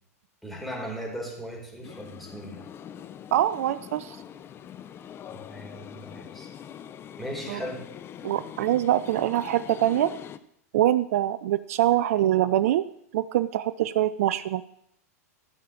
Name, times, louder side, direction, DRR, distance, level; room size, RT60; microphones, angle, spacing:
voice 1, 0.4-2.6 5.3-6.5 7.2-7.9, equal, ahead, -1 dB, 4.5 m, -37 dB
sound 1, 1.8-10.4, left 9 dB, 30° left, 0.8 m, -43 dB
voice 2, 3.3-4.2 7.5-7.6 8.2-10.1 10.7-12.9 13.1-14.6, right 13 dB, 60° right, 15 dB, 0.5 m, -24 dB
14.5 x 6.6 x 7.3 m, 0.72 s
hypercardioid pair, 105°, 9 cm